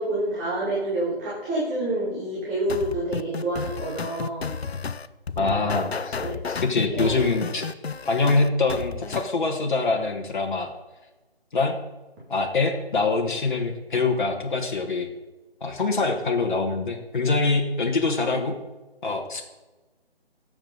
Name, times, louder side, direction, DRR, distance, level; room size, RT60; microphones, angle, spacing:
voice 1, 0.0-4.5 5.4-5.7 6.2-6.4 6.9-7.2, right 1 dB, 15° right, -6 dB, 1.9 m, -28 dB
sound 1, 2.7-9.3, left 5 dB, 75° left, 0.7 m, -32 dB
voice 2, 5.4-6.1 6.5-7.7 8.1-10.7 11.5-11.8 12.3-15.1 15.6-18.5 19.0-19.4, left 3 dB, 50° left, 1 dB, 1.5 m, -24 dB
18.0 x 7.8 x 3.9 m, 1.1 s
figure-of-eight pair, 155°, 32 cm